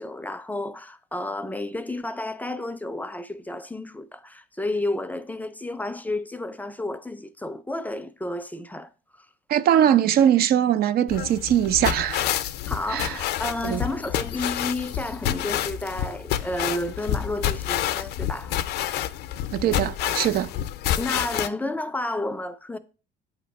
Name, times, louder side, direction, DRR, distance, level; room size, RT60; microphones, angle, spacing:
voice 1, 0.0-8.9 9.2-9.3 12.7-18.6 20.0-20.2 21.0-22.8, left 1 dB, 10° left, 0.5 m, -31 dB
voice 2, 9.5-12.3 12.9-13.2 13.6-13.8 19.5-20.5, right 10 dB, 65° right, 0.5 m, -21 dB
sound 1, 11.1-21.5, left 12 dB, 75° left, 0.5 m, -28 dB
8.4 x 3.0 x 5.8 m
cardioid pair, 110°, 17 cm